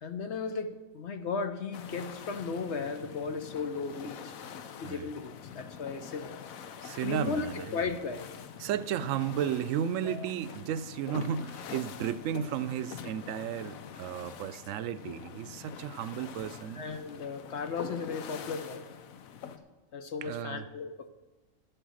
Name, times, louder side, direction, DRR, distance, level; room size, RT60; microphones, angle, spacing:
voice 1, 0.0-4.3 4.8-6.3 7.0-8.3 10.0-10.3 16.7-18.9 19.9-21.1, left 5 dB, 60° left, 0.9 m, -36 dB
sound 1, 1.7-19.6, left 7 dB, 90° left, 1.2 m, -45 dB
voice 2, 6.8-7.8 8.6-16.8 20.2-20.7, right 9 dB, 75° right, 0.9 m, -34 dB
12.5 x 8.1 x 6.3 m
omnidirectional pair, 1.4 m